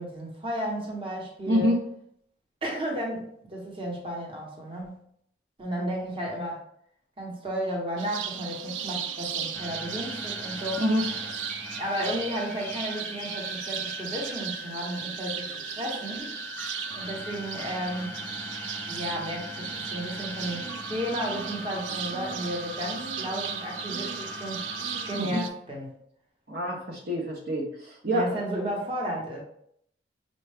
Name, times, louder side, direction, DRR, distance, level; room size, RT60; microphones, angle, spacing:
voice 1, 0.0-1.8 2.6-5.0 5.6-6.6 7.2-10.8 11.8-16.4 16.9-18.2 18.9-24.7 25.1-25.9 28.0-29.4, equal, 30° right, -1 dB, 0.9 m, -33 dB
voice 2, 1.5-1.8 10.8-11.0 25.1-25.4 26.5-28.4, equal, 60° right, -1 dB, 0.8 m, -26 dB
sound 1, 8.0-25.5, right 8 dB, 85° right, 0.4 m, -36 dB
sound 2, 9.5-25.2, left 1 dB, 10° left, 0.5 m, -40 dB
5.3 x 2.3 x 3.3 m, 0.69 s
head